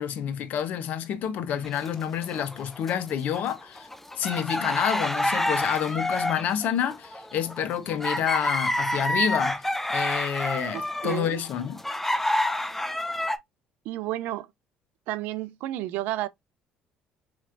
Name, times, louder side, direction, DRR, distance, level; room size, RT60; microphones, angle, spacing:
voice 1, 0.0-3.9 4.1-9.5 9.9-11.8, left 9 dB, 65° left, 0.8 m, -28 dB
sound 1, 1.6-3.0 3.3-13.4, left 1 dB, 10° left, 0.5 m, -28 dB
voice 2, 10.7-11.4 13.9-14.5 15.1-16.3, right 15 dB, 75° right, 0.4 m, -31 dB
4.3 x 3.1 x 2.5 m
supercardioid pair, 80°, 3 cm